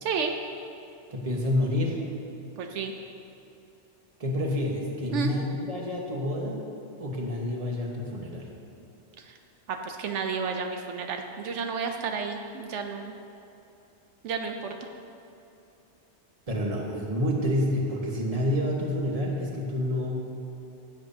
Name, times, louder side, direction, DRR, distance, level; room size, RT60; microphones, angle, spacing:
voice 1, 0.0-0.3 2.6-2.9 5.1-5.3 9.2-9.4 9.7-13.1 14.2-14.7, right 6 dB, 85° right, 4 dB, 1.0 m, -31 dB
voice 2, 1.1-2.0 4.2-6.7 7.0-8.5 16.5-20.2, left 1 dB, 35° right, -1 dB, 1.3 m, -28 dB
15.0 x 8.5 x 2.8 m, 2.9 s
omnidirectional pair, 1.2 m